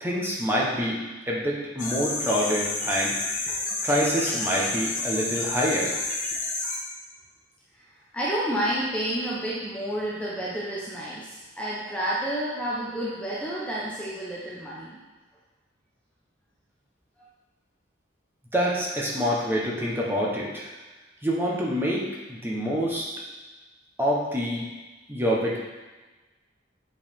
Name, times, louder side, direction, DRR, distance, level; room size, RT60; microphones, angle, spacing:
voice 1, 0.0-3.2 3.8-6.0 18.5-20.7 21.2-23.1 24.0-24.6 25.1-25.6, equal, 10° right, -4 dB, 1.2 m, -26 dB
sound 1, 1.8-6.7, left 2 dB, 45° left, 1.3 m, -30 dB
voice 2, 8.1-15.0 17.2-17.3, right 1 dB, 5° left, -6 dB, 0.9 m, -30 dB
7.9 x 4.8 x 3.7 m, 1.2 s
head